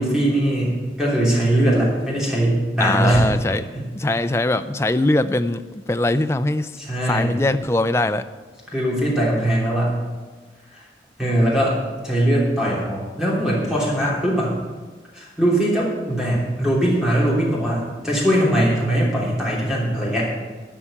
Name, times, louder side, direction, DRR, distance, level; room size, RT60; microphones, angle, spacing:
voice 1, 0.0-3.2 3.7-3.9 6.8-7.3 8.7-10.0 10.7-10.8 11.2-11.8 12.0-14.6 15.1-20.3, right 1 dB, 5° right, -6 dB, 3.1 m, -20 dB
voice 2, 2.8-3.6 3.9-6.8 7.1-8.3, left 2 dB, 15° left, 10 dB, 0.4 m, -21 dB
12.5 x 5.7 x 8.7 m, 1.4 s
head